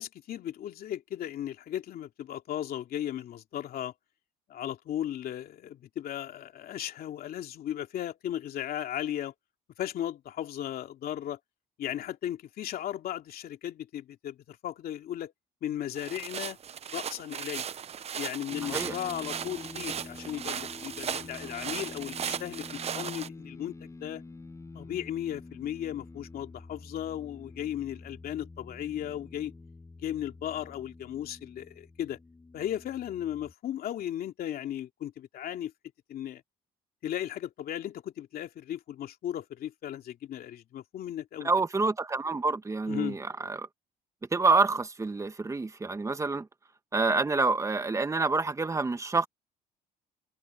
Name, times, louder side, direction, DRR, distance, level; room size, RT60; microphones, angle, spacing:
voice 1, 0.0-3.9 4.5-9.3 9.8-11.4 11.8-15.3 15.6-16.6 16.9-17.7 18.2-24.2 24.7-29.5 30.0-32.2 32.5-35.7 36.1-36.4 37.0-41.5 42.9-43.2, left 11 dB, 60° left, 2.7 m, -36 dB
sound 1, 16.0-23.3, right 8 dB, 40° right, 0.7 m, -37 dB
sound 2, 18.5-33.5, left 3 dB, 15° left, 7.6 m, -47 dB
voice 2, 18.6-18.9 41.4-43.7 44.3-46.5 46.9-49.3, right 3 dB, 20° right, 1.4 m, -27 dB
cardioid pair, 110°, 17 cm